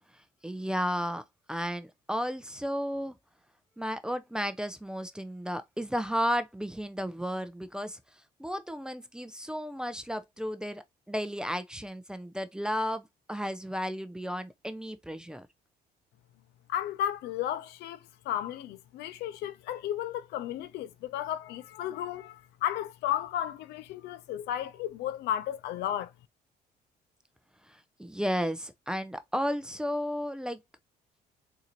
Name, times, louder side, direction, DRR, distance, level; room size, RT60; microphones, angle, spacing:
voice 1, 0.4-1.2 1.5-3.1 3.8-8.0 8.4-15.5 28.0-30.6, equal, 5° right, 0.5 m, -33 dB
voice 2, 16.7-18.0 18.3-26.1, left 11 dB, 80° left, 0.6 m, -33 dB
3.8 x 2.7 x 3.0 m
cardioid pair, 110°, 17 cm